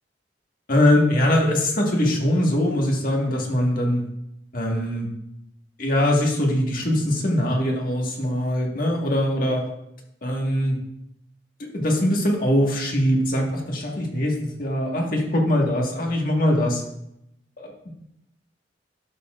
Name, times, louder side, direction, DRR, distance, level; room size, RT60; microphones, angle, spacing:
voice 1, 0.7-4.0 4.5-5.1 5.8-9.7 10.2-10.8 11.6-16.8 17.6-17.9, left 1 dB, 50° left, -1 dB, 1.7 m, -22 dB
11.5 x 7.1 x 2.5 m, 0.81 s
head